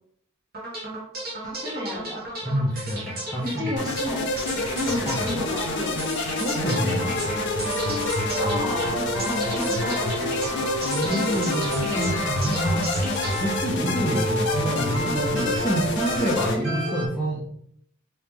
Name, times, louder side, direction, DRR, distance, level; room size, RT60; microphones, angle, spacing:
sound 1, 0.5-14.6, right 2 dB, 45° right, 1.1 m, -35 dB
voice 1, 1.4-2.2 3.4-4.4 4.7-6.1 8.4-10.0, left 1 dB, 15° right, -3 dB, 1.0 m, -32 dB
voice 2, 2.4-3.9 4.8-5.2 6.4-7.2 10.8-13.0 13.4-17.5, right 1 dB, 5° left, -7 dB, 0.6 m, -27 dB
sound 2, 3.8-16.6, left 2 dB, 55° left, 0.6 m, -28 dB
sound 3, 6.6-17.1, left 1 dB, 70° right, 1.4 m, -30 dB
3.1 x 2.8 x 3.5 m, 0.69 s
head